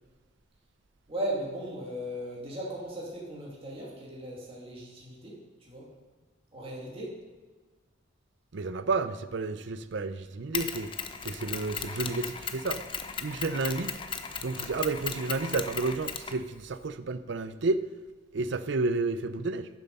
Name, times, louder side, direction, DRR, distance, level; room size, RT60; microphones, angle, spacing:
voice 1, 1.1-5.9 6.5-7.2, right 1 dB, 30° right, -4 dB, 2.3 m, -37 dB
voice 2, 8.5-10.9 11.2-12.8 13.2-13.9 14.4-17.8 18.3-19.7, right 3 dB, 65° right, 13 dB, 0.6 m, -31 dB
Mechanisms, 10.5-16.9, left 6 dB, 25° left, 0.6 m, -37 dB
10.0 x 7.2 x 5.3 m, 1.3 s
head